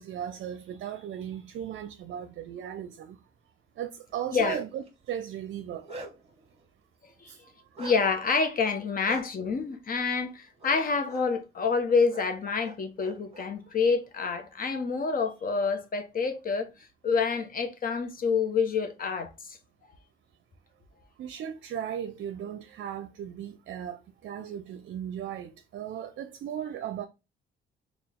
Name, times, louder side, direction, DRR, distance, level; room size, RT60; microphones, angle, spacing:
voice 1, 0.0-3.2 3.8-5.9 7.3-7.4 21.2-27.1, right 9 dB, 65° right, 0.5 m, -37 dB
Bark, 4.1-4.9 5.4-6.4 7.8-8.0 9.0-9.2 10.6-10.8 11.1-11.2 12.1-12.2 12.6-13.5, right 2 dB, 30° right, 1.2 m, -42 dB
voice 2, 7.8-16.7 17.0-19.6, left 5 dB, 45° left, 0.9 m, -27 dB
4.4 x 2.4 x 3.6 m
cardioid pair, 90°, 20 cm